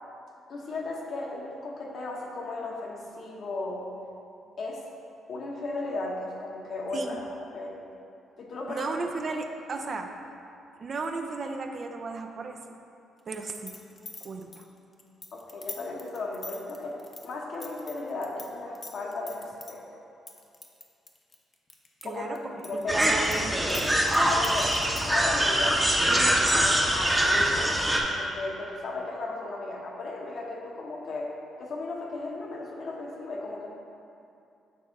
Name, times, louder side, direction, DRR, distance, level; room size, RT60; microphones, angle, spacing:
voice 1, 0.5-3.9 4.6-4.8 5.3-7.7 8.4-9.0 15.3-20.0 22.0-22.4 22.6-23.2 24.3-24.8 25.1-25.8 26.3-27.8 28.0-31.3 31.6-33.7, left 2 dB, 60° left, -1 dB, 1.1 m, -35 dB
voice 2, 8.7-10.1 10.8-12.6 13.3-13.8 14.2-14.6 22.0-22.4 22.7-23.9, right 3 dB, 45° right, 4 dB, 0.5 m, -35 dB
sound 1, 13.3-18.5 18.7-19.7 20.3-22.0 22.4-25.2, left 3 dB, 30° left, 0.8 m, -43 dB
sound 2, 22.9-28.0, right 1 dB, 10° right, 0.8 m, -23 dB
7.6 x 3.4 x 5.2 m, 2.6 s
cardioid pair, 90°, 0 cm